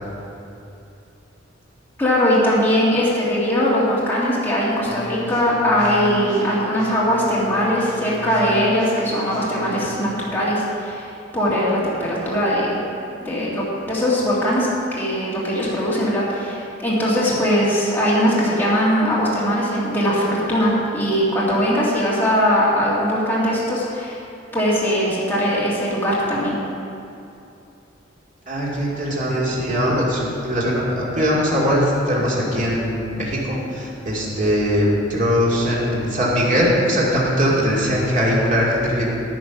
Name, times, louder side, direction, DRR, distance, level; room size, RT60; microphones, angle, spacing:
voice 1, 2.0-12.8 13.2-14.7 15.0-24.2 24.5-26.5, equal, 10° left, -7 dB, 2.0 m, -20 dB
sound 1, 4.9-9.9, equal, 75° right, 2.5 m, -33 dB
voice 2, 28.5-39.1, equal, 40° right, -5 dB, 2.4 m, -20 dB
9.8 x 9.7 x 5.9 m, 2.7 s
head